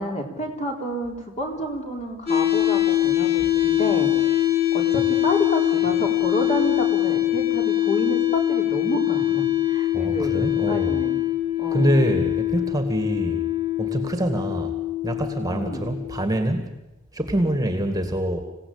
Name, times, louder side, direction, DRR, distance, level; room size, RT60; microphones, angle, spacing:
voice 1, 0.0-4.1 4.7-11.2 11.6-12.1 15.5-15.9, equal, 35° left, 2 dB, 4.1 m, -29 dB
sound 1, 2.3-16.2, left 14 dB, 50° left, 7.9 m, -23 dB
voice 2, 9.9-11.0 11.7-13.4 13.8-14.7 15.0-16.7 17.1-18.4, right 1 dB, 15° right, 6 dB, 2.1 m, -25 dB
26.5 x 17.0 x 8.8 m, 0.97 s
head